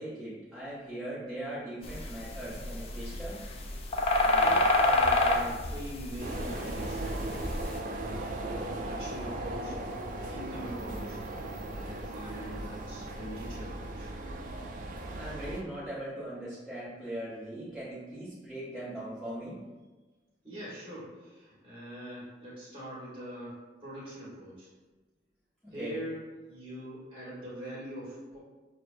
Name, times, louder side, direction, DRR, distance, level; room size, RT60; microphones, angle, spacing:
voice 1, 0.0-3.4 15.1-19.6 25.6-26.0, right 1 dB, 5° left, -12 dB, 0.9 m, -40 dB
sound 1, 1.8-7.7, left 2 dB, 35° left, 0.3 m, -27 dB
voice 2, 4.2-9.8 10.1-11.2 11.7-14.1 20.4-24.7 25.7-26.2 26.5-28.4, equal, 30° right, -8 dB, 1.5 m, -43 dB
sound 2, 6.2-15.6, right 1 dB, 45° right, 0.4 m, -37 dB
6.0 x 2.2 x 2.5 m, 1.2 s
head